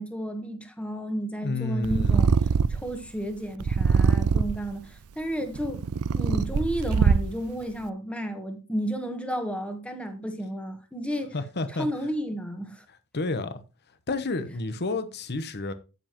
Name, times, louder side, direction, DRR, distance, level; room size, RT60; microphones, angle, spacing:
voice 1, 0.0-2.3 2.7-5.8 6.1-11.3 11.7-12.8, equal, 5° left, 1.3 m, -32 dB
voice 2, 1.4-2.3 11.3-11.9 13.1-13.6 14.1-15.7, left 2 dB, 50° left, 1.0 m, -30 dB
Purr, 1.8-2.9 3.6-4.7 5.4-7.5, right 6 dB, 70° right, 0.4 m, -23 dB
9.4 x 7.9 x 3.0 m
head